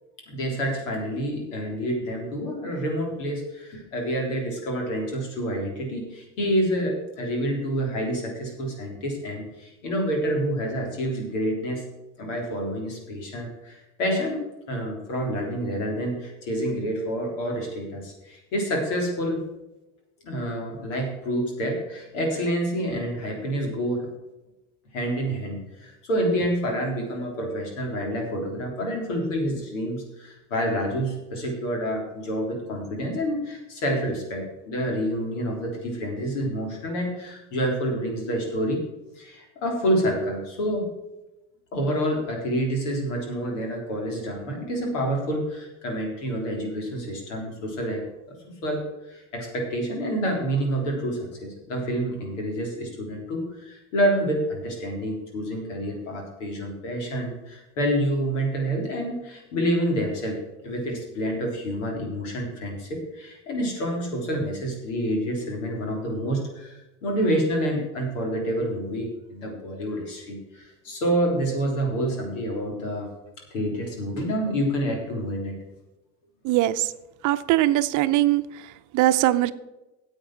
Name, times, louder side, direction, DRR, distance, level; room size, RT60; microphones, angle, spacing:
voice 1, 0.3-11.8 12.2-19.4 20.2-24.1 24.9-38.8 39.2-40.9 41.7-48.4 48.6-73.1 73.5-75.6, equal, 85° left, 3.6 m, -28 dB
voice 2, 76.4-76.9 77.2-78.4 78.9-79.5, right 15 dB, 55° right, 0.7 m, -21 dB
9.3 x 8.0 x 6.1 m
supercardioid pair, 95°, 36 cm